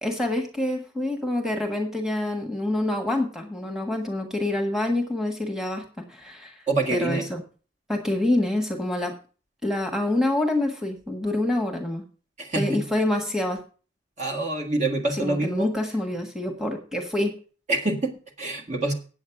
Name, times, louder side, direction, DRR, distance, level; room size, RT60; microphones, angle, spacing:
voice 1, 0.0-6.6 6.9-7.4 7.9-9.1 9.6-12.0 12.5-13.6 15.2-17.3, left 1 dB, 5° right, 2 dB, 1.5 m, -26 dB
voice 2, 6.7-7.3 12.4-12.8 14.2-15.7 17.7-18.9, right 2 dB, 40° right, 2 dB, 1.7 m, -26 dB
8.7 x 8.3 x 5.8 m, 0.37 s
head